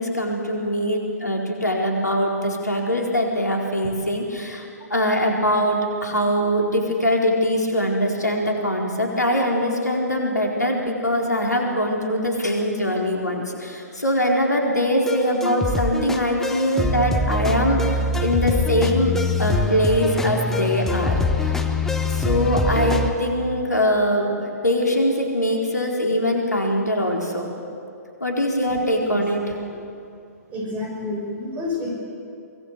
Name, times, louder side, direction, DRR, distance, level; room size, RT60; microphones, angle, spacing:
voice 1, 0.0-19.1 19.4-21.6 22.1-27.5 28.2-29.4, equal, 80° left, 0 dB, 4.3 m, -22 dB
sound 1, 15.1-23.1, left 2 dB, 5° left, 1.2 m, -24 dB
voice 2, 29.1-29.8 30.5-31.9, left 2 dB, 15° right, -1 dB, 6.2 m, -30 dB
24.0 x 19.0 x 8.1 m, 2.5 s
figure-of-eight pair, 125°, 9 cm